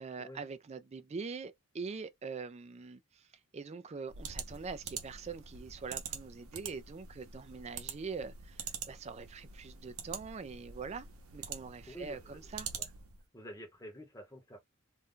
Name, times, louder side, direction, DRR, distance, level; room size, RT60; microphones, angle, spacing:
voice 1, 0.0-3.3 3.5-11.1 11.3-12.7, right 5 dB, 30° right, 0.3 m, -43 dB
sound 1, 4.1-13.2, right 7 dB, 85° right, 0.7 m, -45 dB
voice 2, 11.9-12.4 12.8-12.9 13.3-14.6, right 1 dB, 15° left, 0.9 m, -48 dB
2.5 x 2.2 x 3.6 m
head